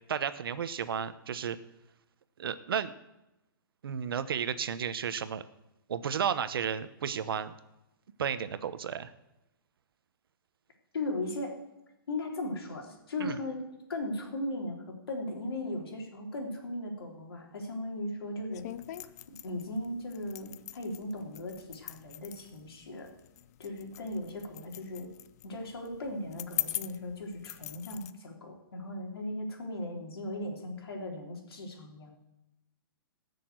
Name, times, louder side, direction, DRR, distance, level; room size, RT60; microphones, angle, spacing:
voice 1, 0.1-1.6 2.4-2.9 3.8-5.4 5.9-7.5 8.2-9.1 13.2-13.4, right 8 dB, 70° right, 13 dB, 1.0 m, -33 dB
voice 2, 10.9-11.5 12.1-13.6 13.9-18.6 19.3-23.1 23.6-25.1 25.4-32.1, left 1 dB, 85° left, 1 dB, 3.7 m, -37 dB
sound 1, 18.5-28.1, left 13 dB, 45° left, 0.6 m, -42 dB
17.0 x 6.8 x 7.9 m, 0.93 s
hypercardioid pair, 150°, 12 cm